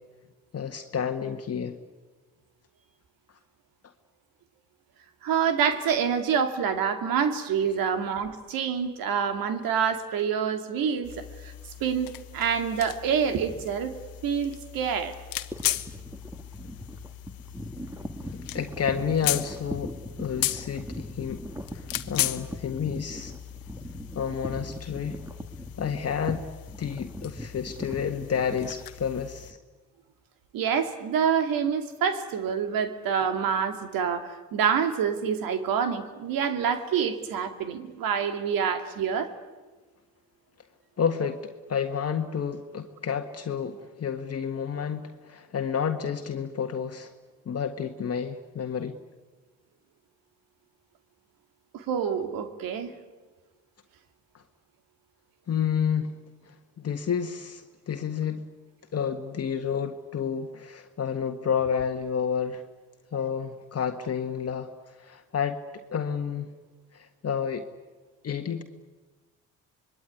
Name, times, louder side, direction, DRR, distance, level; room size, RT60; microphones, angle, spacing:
voice 1, 0.5-1.8 18.2-21.4 21.7-23.3 24.1-25.2 25.8-26.4 26.8-29.6 41.0-47.1 47.4-49.0 54.3-54.4 55.5-56.1 56.5-58.4 58.9-62.6 63.1-65.6 65.9-66.5 66.9-67.6 68.2-68.6, left 7 dB, 40° left, 5 dB, 1.7 m, -30 dB
voice 2, 5.2-11.5 11.8-13.9 14.2-15.1 30.5-39.3 51.7-52.9, right 7 dB, 70° right, 8 dB, 2.6 m, -27 dB
sound 1, 11.0-29.5, left 14 dB, 70° left, 1.4 m, -37 dB
sound 2, 15.5-29.6, equal, 10° right, 2.1 m, -40 dB
26.0 x 21.5 x 9.8 m, 1.3 s
supercardioid pair, 65°, 36 cm